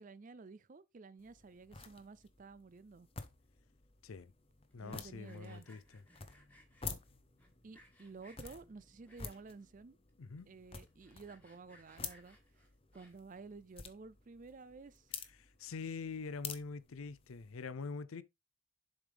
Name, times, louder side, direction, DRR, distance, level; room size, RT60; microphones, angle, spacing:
voice 1, 0.0-3.1 4.8-5.7 7.6-10.0 10.5-12.7 12.9-15.1, right 4 dB, 40° right, 0.4 m, -53 dB
sound 1, 1.2-17.7, left 6 dB, 30° left, 0.7 m, -51 dB
voice 2, 4.7-5.8 10.2-10.5 15.6-18.2, left 4 dB, 90° left, 0.6 m, -44 dB
Sawing, 4.7-6.9 7.4-8.6 9.0-9.6 10.1-10.2 10.4-10.5 10.9-13.4, left 1 dB, 10° left, 1.7 m, -64 dB
7.2 x 5.0 x 3.4 m
head